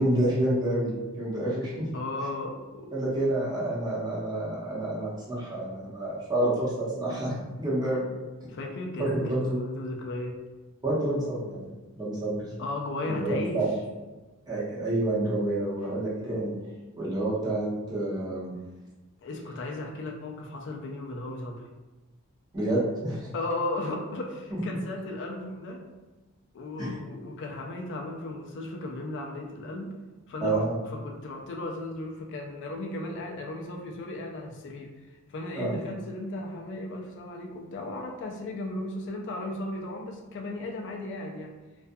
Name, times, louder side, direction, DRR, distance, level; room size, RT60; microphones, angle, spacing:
voice 1, 0.0-1.9 2.9-8.1 9.0-9.6 10.8-11.6 12.0-12.5 13.1-13.7 14.5-16.5 17.0-18.5 22.5-23.3 26.8-26.9 30.4-30.8 35.5-35.7, right 1 dB, 20° right, -7 dB, 0.7 m, -28 dB
voice 2, 1.9-2.9 8.5-10.3 12.6-13.6 19.2-21.7 23.3-25.8 26.5-29.9 30.3-41.6, left 2 dB, 55° left, 1 dB, 0.4 m, -35 dB
2.4 x 2.2 x 2.6 m, 1.2 s
head